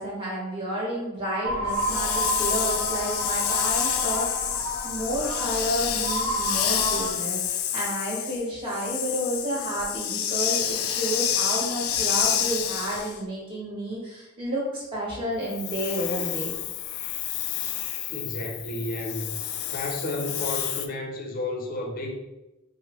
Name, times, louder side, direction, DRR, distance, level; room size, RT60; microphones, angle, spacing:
voice 1, 0.0-16.5, equal, 25° right, -6 dB, 1.3 m, -31 dB
sound 1, 1.4-7.1, right 1 dB, 90° right, 0.9 m, -31 dB
Hiss, 1.7-13.2 15.4-20.9, left 10 dB, 80° left, 0.3 m, -29 dB
voice 2, 18.1-19.4 19.7-22.2, left 1 dB, 40° left, 1 dB, 0.6 m, -32 dB
4.7 x 2.1 x 3.0 m, 1.0 s
head